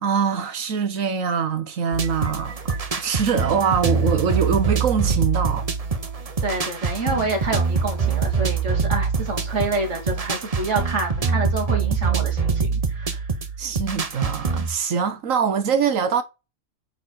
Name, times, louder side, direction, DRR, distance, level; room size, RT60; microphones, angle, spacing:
voice 1, 0.0-5.7 13.6-16.2, right 6 dB, 90° right, 1.5 m, -23 dB
sound 1, 1.9-14.8, right 5 dB, 30° right, 0.9 m, -24 dB
voice 2, 6.4-13.3, right 3 dB, 65° right, 2.7 m, -28 dB
8.9 x 4.1 x 4.6 m
omnidirectional pair, 1.3 m